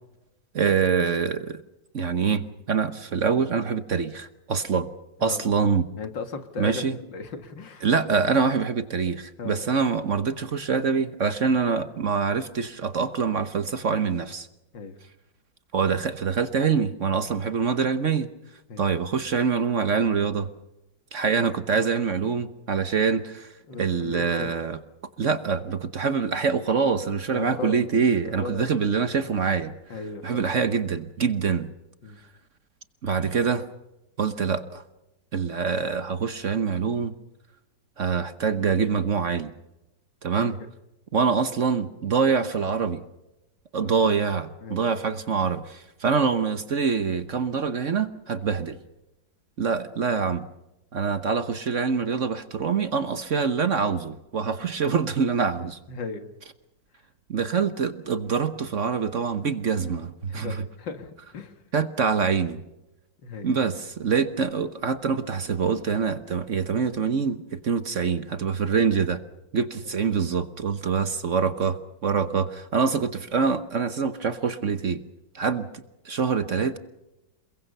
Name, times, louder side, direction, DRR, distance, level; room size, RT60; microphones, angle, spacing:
voice 1, 0.5-1.6 1.9-4.9 5.2-5.9 6.6-7.0 7.8-14.5 15.7-18.3 18.8-20.5 21.1-23.5 23.8-24.8 25.2-31.7 33.0-33.7 34.2-34.8 35.3-37.1 38.0-39.5 40.2-40.6 41.1-43.0 43.7-48.8 49.6-50.5 50.9-55.8 57.3-60.6 61.7-62.6 63.4-69.2 69.5-75.0 75.3-76.8, right 5 dB, 50° right, 11 dB, 1.2 m, -25 dB
voice 2, 6.0-7.9 9.4-9.6 14.7-15.0 18.7-18.9 23.7-24.5 27.3-27.8 28.3-28.7 29.9-30.5 32.0-32.2 40.4-40.6 43.8-44.1 44.6-44.9 55.9-56.3 60.3-61.5 63.2-63.5, left 4 dB, 80° left, 8 dB, 2.6 m, -36 dB
28.5 x 22.5 x 5.5 m, 0.95 s
omnidirectional pair, 2.0 m